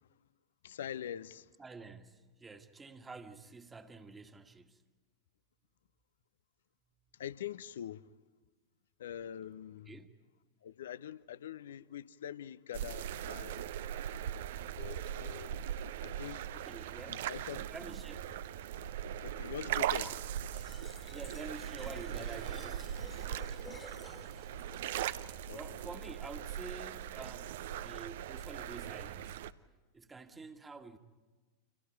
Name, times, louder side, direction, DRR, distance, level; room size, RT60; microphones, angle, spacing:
voice 1, 0.6-1.5 7.1-8.1 9.0-9.9 10.6-13.6 14.8-15.6 16.0-16.5 17.1-17.7 19.2-20.2 25.5-25.6, left 10 dB, 60° left, 0.7 m, -44 dB
voice 2, 1.6-4.8 9.9-10.1 16.5-17.3 17.7-18.4 21.1-23.0 25.5-29.5 29.9-31.0, right 4 dB, 15° right, 1.7 m, -49 dB
sound 1, 12.7-29.5, right 10 dB, 55° right, 0.7 m, -40 dB
sound 2, 13.8-17.0 17.2-17.9 19.0-20.2 21.2-21.8, right 4 dB, 75° right, 2.5 m, -58 dB
Fill (with liquid), 20.5-25.5, left 3 dB, 15° left, 1.9 m, -54 dB
30.0 x 27.5 x 4.7 m
figure-of-eight pair, 90°, 0 cm